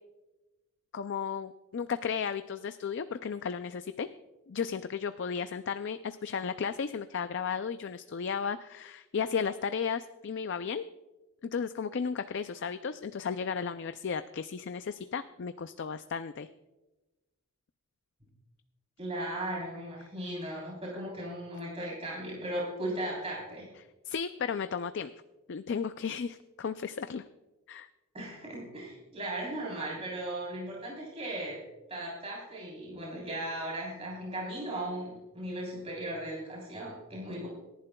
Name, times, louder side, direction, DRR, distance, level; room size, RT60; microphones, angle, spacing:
voice 1, 0.9-4.1 4.5-10.8 11.4-16.5 24.1-25.1 25.5-27.2 27.7-27.9, left 6 dB, 55° left, 11 dB, 0.4 m, -34 dB
voice 2, 19.0-23.7 28.1-31.6 31.9-37.5, right 1 dB, 25° right, -4 dB, 3.5 m, -37 dB
26.5 x 11.0 x 2.3 m, 1.1 s
head